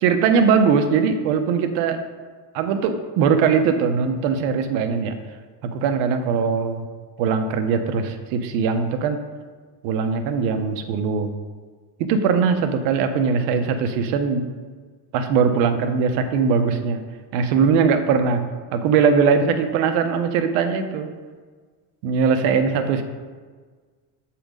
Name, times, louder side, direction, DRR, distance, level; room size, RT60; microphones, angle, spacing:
voice 1, 0.0-2.0 2.5-5.2 5.6-6.8 7.2-9.3 9.8-11.3 12.0-14.4 15.1-17.0 17.3-18.5 18.7-21.1 22.0-23.0, right 6 dB, 85° right, 8 dB, 0.9 m, -20 dB
7.1 x 4.4 x 5.1 m, 1.5 s
cardioid pair, 135°, 47 cm